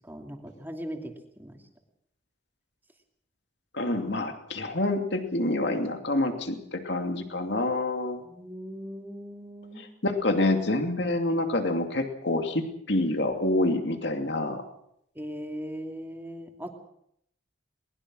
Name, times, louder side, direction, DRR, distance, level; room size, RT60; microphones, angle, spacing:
voice 1, 0.0-1.6 8.1-9.9 15.1-16.7, equal, 10° right, 3 dB, 2.7 m, -39 dB
voice 2, 3.7-8.2 9.8-14.6, left 2 dB, 60° left, 5 dB, 2.7 m, -27 dB
22.0 x 20.5 x 6.3 m, 0.73 s
head